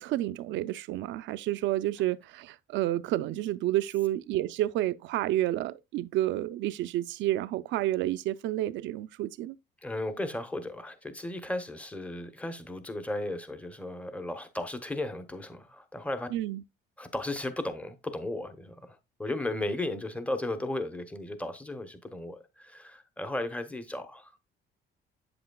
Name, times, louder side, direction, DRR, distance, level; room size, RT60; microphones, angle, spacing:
voice 1, 0.0-9.6 16.3-16.6, right 14 dB, 80° right, 0.5 m, -30 dB
voice 2, 9.8-16.3 17.0-24.4, left 1 dB, 5° left, 0.8 m, -35 dB
7.8 x 7.6 x 2.2 m
cardioid pair, 135°, 19 cm